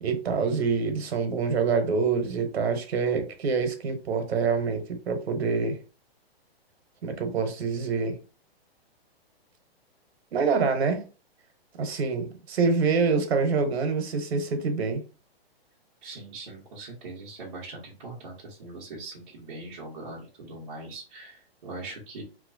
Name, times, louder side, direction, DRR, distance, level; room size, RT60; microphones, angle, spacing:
voice 1, 0.0-5.8 7.0-8.2 10.3-11.0 11.8-15.0, right 5 dB, 80° right, 1.0 m, -26 dB
voice 2, 16.0-22.2, right 2 dB, 40° right, 1.0 m, -41 dB
3.1 x 2.9 x 2.6 m
hypercardioid pair, 175°, 31 cm